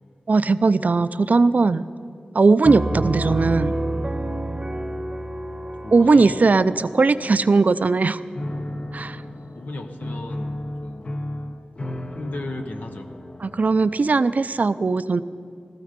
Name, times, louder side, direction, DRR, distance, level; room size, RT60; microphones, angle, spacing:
voice 1, 0.3-1.9 2.3-3.7 5.9-8.2 8.9-9.2 13.4-15.2, right 3 dB, 60° right, 14 dB, 0.4 m, -18 dB
Piano, 2.6-8.2, right 1 dB, 25° right, 0.9 m, -29 dB
voice 2, 5.8-6.5 9.5-11.2 12.1-13.1, left 2 dB, 70° left, 5 dB, 1.0 m, -35 dB
Piano 2, 8.3-14.3, left 1 dB, 45° left, 0.9 m, -34 dB
16.0 x 14.0 x 5.1 m, 2.3 s
wide cardioid pair, 60°, 3 cm